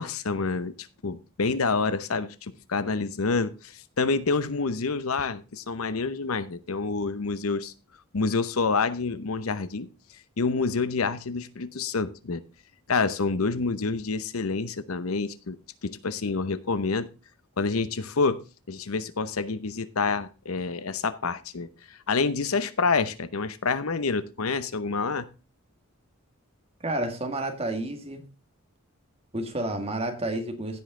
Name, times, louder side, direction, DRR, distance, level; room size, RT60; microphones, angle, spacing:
voice 1, 0.0-7.7 8.1-9.9 10.4-12.4 12.9-15.6 15.8-17.1 17.6-18.4 18.7-25.3, left 4 dB, 85° left, 0.8 m, -28 dB
voice 2, 26.8-28.3 29.3-30.8, right 1 dB, 30° right, 1.8 m, -30 dB
16.0 x 5.4 x 3.7 m
head